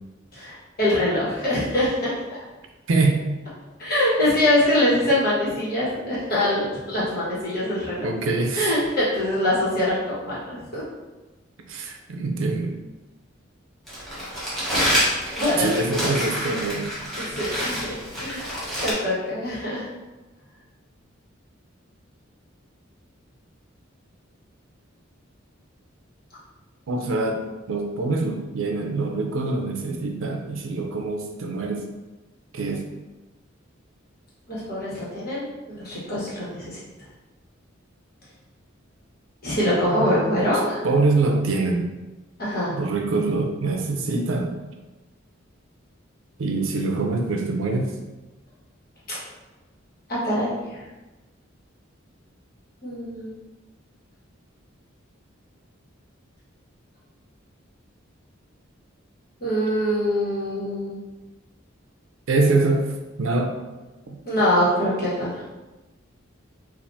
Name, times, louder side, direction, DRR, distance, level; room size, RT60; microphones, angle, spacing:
voice 1, 0.3-2.1 3.8-8.1 8.5-10.8 15.4-15.8 17.3-18.4 18.8-19.9 34.5-36.8 39.4-40.8 42.4-42.7 49.1-49.2 50.1-50.8 52.8-53.3 59.4-61.0 64.2-65.3, left 1 dB, 50° left, -9 dB, 1.3 m, -24 dB
voice 2, 2.9-3.3 8.0-8.7 11.7-12.7 15.6-16.9 26.9-27.4 27.7-31.8 32.5-32.8 39.9-41.9 42.7-44.5 46.4-47.9 62.3-62.9 63.2-63.5 64.1-64.2, right 3 dB, 75° right, 2 dB, 0.5 m, -24 dB
Crumpling crinkling, 13.9-18.9, equal, ahead, 1.0 m, -27 dB
3.4 x 2.5 x 2.7 m, 1.1 s
head